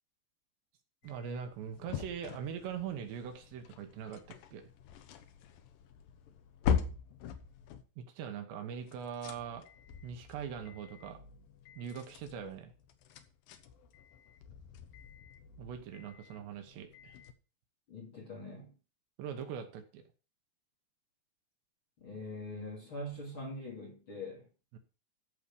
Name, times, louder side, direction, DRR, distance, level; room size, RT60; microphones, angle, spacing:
sound 1, 1.0-7.8 8.8-17.3, left 7 dB, 75° left, 2.1 m, -42 dB
voice 1, 1.0-4.7 8.0-9.7 10.0-11.2 11.8-12.7 15.6-17.2 19.2-20.0 24.7-24.8, right 7 dB, 75° right, 6 dB, 3.2 m, -42 dB
voice 2, 17.9-18.7 22.0-24.5, left 1 dB, 35° left, -1 dB, 2.8 m, -43 dB
14.5 x 5.0 x 7.0 m, 0.36 s
omnidirectional pair, 5.3 m